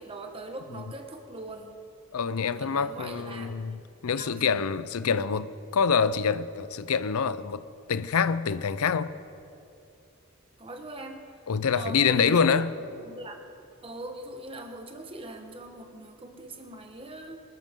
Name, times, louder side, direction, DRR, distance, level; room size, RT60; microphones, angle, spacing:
voice 1, 0.0-1.8 2.5-3.5 4.2-4.5 10.6-11.3 11.7-12.6 12.9-13.4 13.8-17.4, right 2 dB, 25° right, 1.2 m, -41 dB
voice 2, 2.1-7.6 7.9-9.1 11.5-12.8, left 6 dB, 90° left, 0.6 m, -26 dB
24.0 x 12.5 x 3.7 m
head